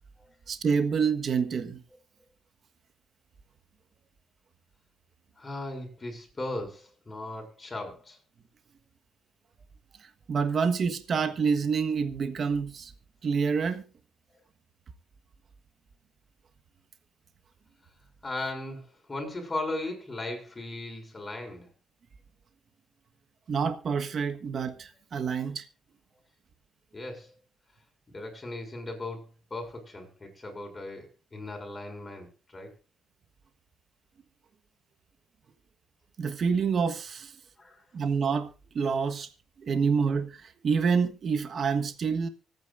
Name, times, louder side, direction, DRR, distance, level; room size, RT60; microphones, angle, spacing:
voice 1, 0.5-1.8 10.0-12.9 13.2-13.8 23.5-25.6 36.2-37.3 37.9-38.5 38.7-39.3 39.6-42.3, right 5 dB, 50° right, 1.4 m, -27 dB
voice 2, 5.4-8.2 18.2-21.7 25.3-25.4 26.9-27.3 28.1-32.3 32.5-32.7 37.6-37.8, left 2 dB, 25° left, 6.6 m, -37 dB
25.0 x 9.4 x 2.6 m
cardioid pair, 90°, 0 cm